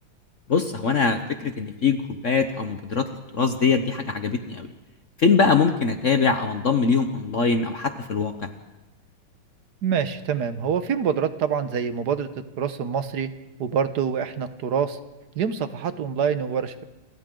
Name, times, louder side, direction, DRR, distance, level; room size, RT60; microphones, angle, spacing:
voice 1, 0.5-3.1 3.3-4.7 5.2-8.5, left 5 dB, 50° left, 7 dB, 1.0 m, -22 dB
voice 2, 9.8-12.3 12.6-13.3 13.6-15.0 15.3-16.8, right 7 dB, 55° right, 11 dB, 1.4 m, -25 dB
29.5 x 23.5 x 3.8 m, 1.0 s
omnidirectional pair, 2.3 m